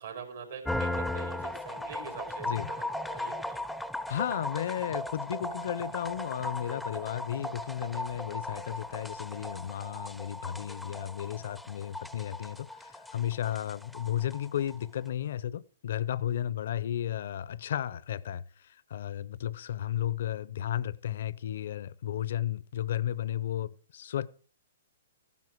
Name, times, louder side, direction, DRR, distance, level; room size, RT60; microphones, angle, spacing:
voice 1, 0.0-3.6, right 5 dB, 75° right, 4.6 m, -44 dB
sound 1, 0.6-14.8, left 1 dB, ahead, 0.5 m, -37 dB
voice 2, 4.1-24.3, left 11 dB, 65° left, 0.6 m, -34 dB
15.0 x 11.0 x 4.6 m
hypercardioid pair, 135°, 0 cm